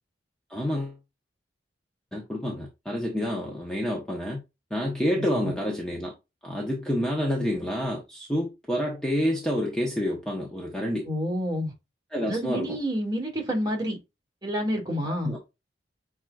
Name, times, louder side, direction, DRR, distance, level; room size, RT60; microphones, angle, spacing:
voice 1, 0.5-1.0 2.1-4.4 4.7-6.1 6.4-11.1 12.1-12.8 15.0-15.4, equal, 5° left, 0.9 m, -28 dB
voice 2, 5.1-5.5 11.1-11.7 12.3-14.0 14.4-15.4, equal, 20° right, 2.0 m, -29 dB
6.1 x 3.7 x 2.3 m
head